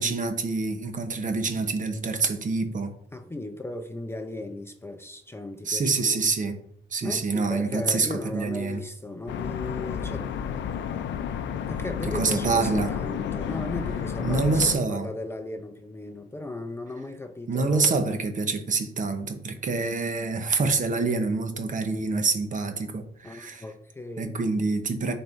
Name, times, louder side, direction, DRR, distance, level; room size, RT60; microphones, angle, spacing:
voice 1, 0.0-2.9 5.6-6.6 6.9-8.8 12.1-12.9 14.2-15.1 17.5-23.6 24.2-25.1, right 4 dB, 40° right, 7 dB, 0.9 m, -26 dB
voice 2, 3.1-6.3 7.0-10.3 11.7-18.0 19.7-19.8 23.2-24.4, left 2 dB, 10° left, 7 dB, 0.5 m, -36 dB
sound 1, 9.3-14.8, left 8 dB, 65° left, 0.5 m, -31 dB
10.5 x 4.4 x 2.6 m, 0.70 s
cardioid pair, 90°, 20 cm